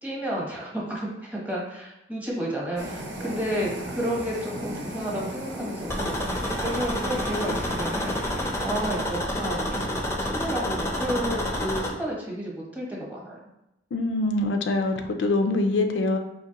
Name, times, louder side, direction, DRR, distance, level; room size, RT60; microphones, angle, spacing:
voice 1, 0.0-13.4, right 1 dB, 10° right, -4 dB, 0.9 m, -32 dB
sound 1, 2.8-9.3, right 1 dB, 85° right, 0.9 m, -37 dB
sound 2, 5.9-11.9, left 1 dB, 15° left, 0.5 m, -29 dB
voice 2, 13.9-16.2, left 2 dB, 90° left, 5 dB, 0.4 m, -24 dB
4.6 x 2.9 x 2.9 m, 0.89 s
head